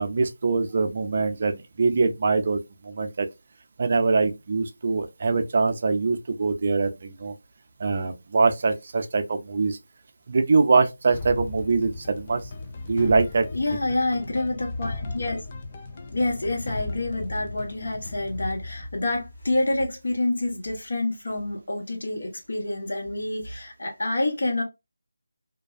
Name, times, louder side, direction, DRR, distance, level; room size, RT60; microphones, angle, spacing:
voice 1, 0.0-3.3 3.8-7.3 7.8-9.8 10.3-12.4 12.9-13.5, right 4 dB, 40° right, 0.4 m, -23 dB
sound 1, 11.1-20.0, left 3 dB, 30° left, 0.4 m, -36 dB
voice 2, 13.5-15.4 15.9-24.6, left 2 dB, 65° left, 1.2 m, -27 dB
2.5 x 2.2 x 2.4 m
figure-of-eight pair, 165°, 0 cm